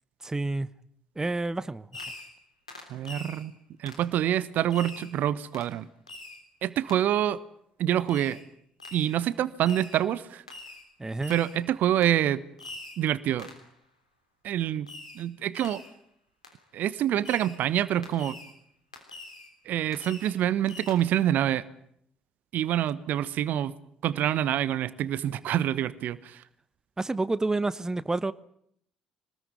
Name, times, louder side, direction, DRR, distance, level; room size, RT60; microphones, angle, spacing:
voice 1, 0.2-0.7 1.2-1.9 11.0-11.4 27.0-28.3, right 2 dB, 15° right, 16 dB, 1.1 m, -29 dB
Fireworks, 1.9-2.4 2.7-3.4 3.9-4.1 4.7-5.1 5.5-5.7 6.1-6.4 6.9-7.0 8.1-8.4 8.8-9.2 9.6-10.0 10.5-10.9 11.2-11.6 12.0-12.2 12.6-13.0 13.4-13.7 14.9-15.3 15.5-15.9 16.4-16.6 17.2-17.6 18.0-18.5 18.9-19.5 19.9-20.4 20.7-20.9, left 2 dB, 85° left, 3.3 m, -44 dB
voice 2, 2.9-3.5 3.8-5.9 6.6-7.4 7.8-8.4 8.9-10.4 11.3-12.4 13.0-13.5 14.4-14.9 15.1-15.8 16.7-18.4 19.6-21.6 22.5-23.7 24.0-26.4, right 11 dB, 55° right, 18 dB, 1.1 m, -26 dB
25.5 x 20.0 x 9.5 m, 0.71 s
figure-of-eight pair, 50°, 4 cm